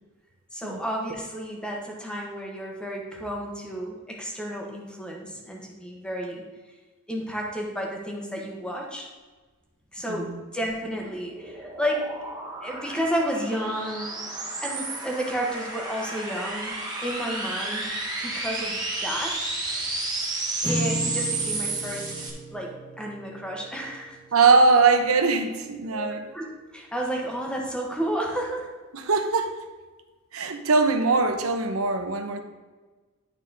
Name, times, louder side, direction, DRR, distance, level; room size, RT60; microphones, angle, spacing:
voice 1, 0.5-6.4 7.1-9.1 9.9-12.1 12.6-14.2 14.6-17.9 18.2-19.5 20.6-22.2 22.5-24.2 25.9-26.1 26.3-26.4 26.7-28.7, equal, 5° left, 1.3 m, -31 dB
voice 2, 10.1-10.4 24.3-26.2 28.9-29.6 30.3-32.4, right 4 dB, 75° right, 0.8 m, -21 dB
sound 1, 10.5-22.3, right 2 dB, 20° right, 1.5 m, -32 dB
sound 2, 20.6-25.0, right 1 dB, 20° left, 1.5 m, -35 dB
11.0 x 4.2 x 4.0 m
head